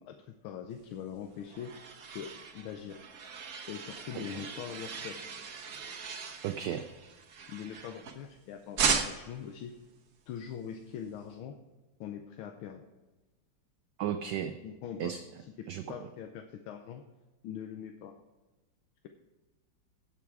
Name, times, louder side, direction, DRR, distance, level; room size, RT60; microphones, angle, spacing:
voice 1, 0.0-1.7 2.1-3.1 3.7-5.2 7.5-9.7 10.3-11.5 12.0-12.8 14.6-15.1 15.9-17.0 17.4-18.1, left 8 dB, 80° left, 6 dB, 1.6 m, -42 dB
sound 1, 1.0-8.4 8.8-9.4, right 6 dB, 50° right, 1.3 m, -37 dB
voice 2, 4.1-4.4 6.4-6.9 14.0-14.6 15.0-15.2 15.7-16.1, right 9 dB, 70° right, 9 dB, 1.1 m, -35 dB
16.5 x 6.0 x 4.7 m, 1.2 s
omnidirectional pair, 2.3 m